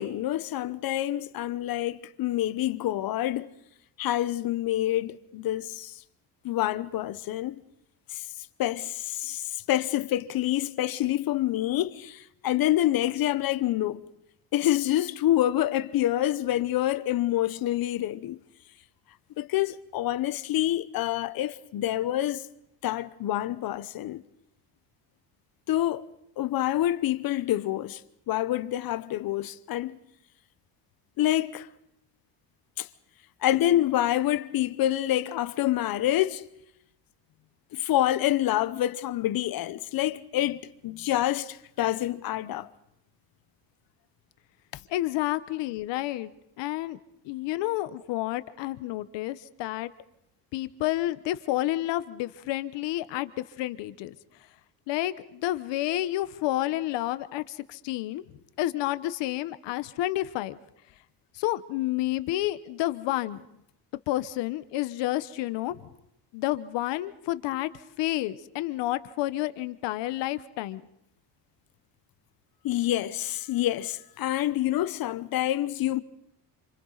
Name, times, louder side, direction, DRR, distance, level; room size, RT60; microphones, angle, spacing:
voice 1, 0.0-3.5 4.0-5.9 6.4-7.6 8.1-8.3 8.6-14.1 14.5-18.4 19.4-22.5 22.8-24.2 25.7-26.0 26.4-28.0 28.3-30.0 31.2-31.7 32.8-32.9 33.4-36.4 37.7-42.7 72.6-76.0, left 13 dB, 55° left, 0.9 m, -27 dB
voice 2, 44.9-46.3 46.6-47.0 47.2-49.9 50.5-54.2 54.9-58.2 58.6-60.6 61.3-63.4 64.1-65.9 66.3-67.7 68.0-70.8, left 16 dB, 80° left, 1.1 m, -30 dB
27.5 x 26.0 x 4.0 m
cardioid pair, 125°, 42 cm